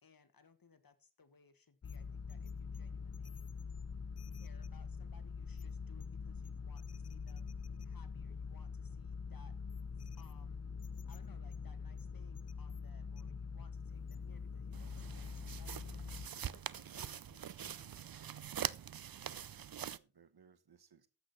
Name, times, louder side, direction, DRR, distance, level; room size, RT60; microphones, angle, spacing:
voice 1, 0.0-3.5 4.3-7.5 7.8-9.6 10.0-10.6 11.1-16.0 16.3-18.5, left 5 dB, 65° left, 1.6 m, -65 dB
sound 1, 1.8-16.3, left 5 dB, 40° left, 0.6 m, -44 dB
sound 2, 14.7-20.0, right 9 dB, 70° right, 0.6 m, -44 dB
voice 2, 16.7-17.0 19.7-21.1, right 6 dB, 85° right, 1.3 m, -65 dB
12.5 x 8.2 x 4.2 m
wide cardioid pair, 65°, 37 cm